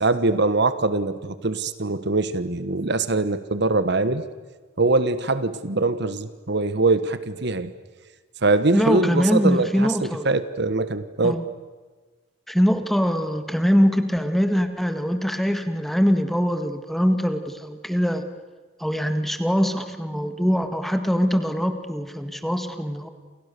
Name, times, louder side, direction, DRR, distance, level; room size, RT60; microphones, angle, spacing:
voice 1, 0.0-4.2 4.8-7.7 8.4-11.4, right 3 dB, 60° right, 12 dB, 1.3 m, -23 dB
voice 2, 8.7-10.3 11.2-11.4 12.5-18.2 18.8-23.1, equal, ahead, 7 dB, 1.8 m, -22 dB
29.0 x 28.5 x 6.9 m, 1.3 s
head